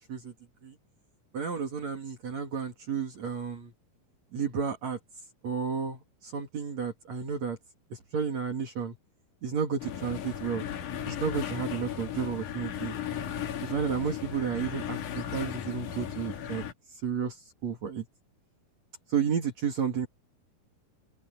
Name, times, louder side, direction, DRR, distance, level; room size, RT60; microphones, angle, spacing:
voice 1, 1.3-3.7 4.3-5.0 5.4-7.6 7.9-8.9 9.4-10.7 11.1-13.0 13.6-16.6 17.0-17.4 17.6-18.0 19.1-20.1, right 6 dB, 50° right, 3.0 m, -32 dB
sound 1, 9.8-16.7, left 9 dB, 60° left, 2.9 m, -36 dB
open air
omnidirectional pair, 4.6 m